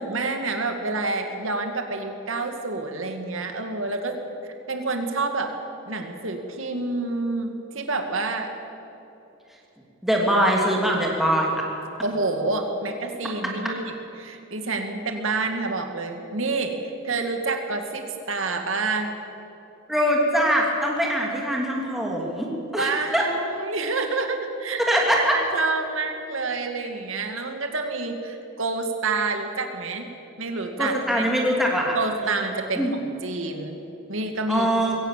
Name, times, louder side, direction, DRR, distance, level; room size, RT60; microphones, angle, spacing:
voice 1, 0.0-4.1 4.4-5.5 5.9-8.5 10.4-10.5 12.0-19.1 22.7-24.8 25.3-30.1 30.4-31.2 31.9-33.8 34.1-34.7, right 3 dB, 70° right, 5 dB, 2.3 m, -28 dB
voice 2, 10.0-11.6 19.9-23.3 24.9-25.3 30.8-32.0 32.2-32.4 32.7-32.9 34.5-35.0, equal, ahead, -2 dB, 2.9 m, -22 dB
22.5 x 17.5 x 7.6 m, 2.9 s
head